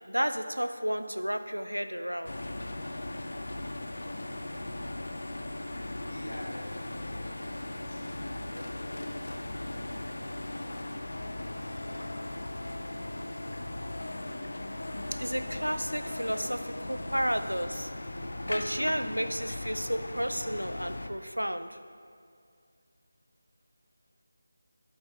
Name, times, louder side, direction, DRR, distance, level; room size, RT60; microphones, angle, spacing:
voice 1, 0.1-2.4 15.1-17.9 18.4-21.8, equal, 90° right, 10 dB, 0.4 m, -32 dB
sound 1, 2.2-21.1, left 1 dB, 60° left, 0.5 m, -38 dB
voice 2, 6.0-9.2 9.7-12.1, equal, 80° left, -3 dB, 1.9 m, -48 dB
7.7 x 7.1 x 4.1 m, 2.2 s
figure-of-eight pair, 160°, 0 cm